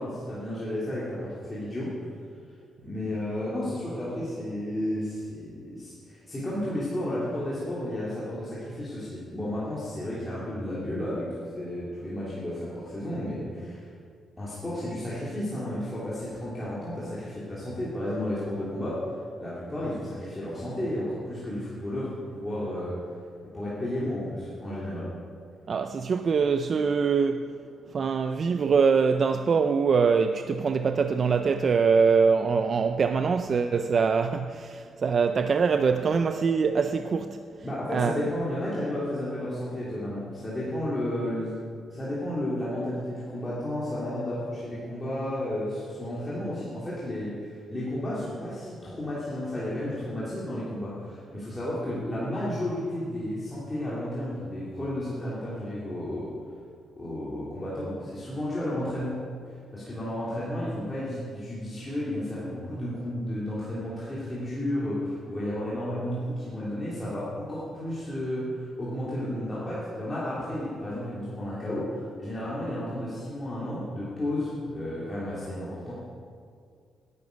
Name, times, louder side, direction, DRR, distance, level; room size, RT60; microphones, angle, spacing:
voice 1, 0.0-1.9 2.8-11.3 11.5-13.9 14.4-19.0 19.4-22.9 23.5-25.1 37.6-41.6 41.9-56.3 57.0-59.2 59.7-75.9, left 1 dB, 15° left, 2.9 m, -32 dB
voice 2, 25.7-27.5 27.9-37.4 37.9-38.2, right 5 dB, 35° right, 0.4 m, -23 dB
19.0 x 11.0 x 5.2 m
cardioid pair, 170°, 0 cm